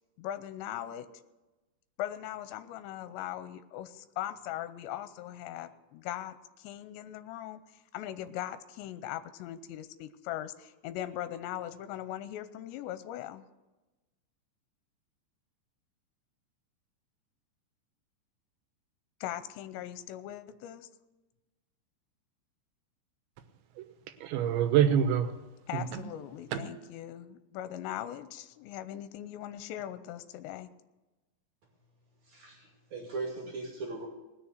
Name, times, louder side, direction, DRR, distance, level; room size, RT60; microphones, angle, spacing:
voice 1, 0.2-1.1 2.0-13.5 19.2-20.9 25.7-30.7, left 12 dB, 85° left, 12 dB, 2.9 m, -40 dB
voice 2, 23.7-25.4 25.7-26.0 26.5-26.6, right 9 dB, 85° right, 8 dB, 3.4 m, -27 dB
voice 3, 32.3-34.1, right 3 dB, 45° right, -1 dB, 3.3 m, -39 dB
19.5 x 6.8 x 6.5 m, 1.1 s
omnidirectional pair, 5.1 m